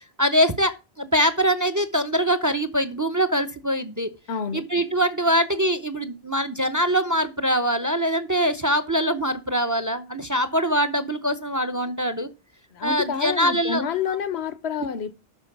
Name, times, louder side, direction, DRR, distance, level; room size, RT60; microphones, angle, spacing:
voice 1, 0.2-4.1 4.5-12.3 12.8-13.8 14.1-14.2, equal, 20° right, 0.6 m, -23 dB
voice 2, 4.3-4.6 12.7-15.2, left 7 dB, 80° left, 1.1 m, -28 dB
12.0 x 4.7 x 5.9 m
omnidirectional pair, 1.1 m